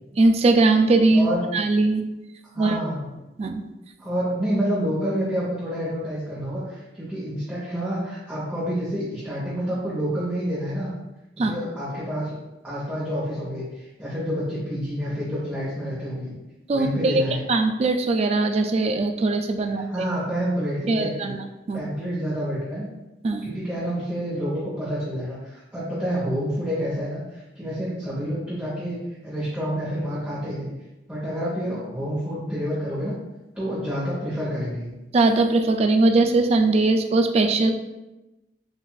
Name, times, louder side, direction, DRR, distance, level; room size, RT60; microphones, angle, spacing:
voice 1, 0.2-2.0 2.6-2.8 3.4-3.6 11.4-11.6 16.7-17.2 17.5-19.9 20.9-21.4 21.7-21.8 23.2-23.5 35.1-37.7, right 2 dB, 35° right, 6 dB, 0.3 m, -20 dB
voice 2, 2.5-3.0 4.0-10.9 11.4-12.3 12.6-16.3 16.7-17.4 19.9-21.3 21.7-22.9 23.4-27.2 27.5-29.0 29.2-30.7 31.1-33.1 33.5-34.9, equal, 10° right, -9 dB, 0.9 m, -28 dB
6.8 x 2.5 x 2.3 m, 1.0 s
head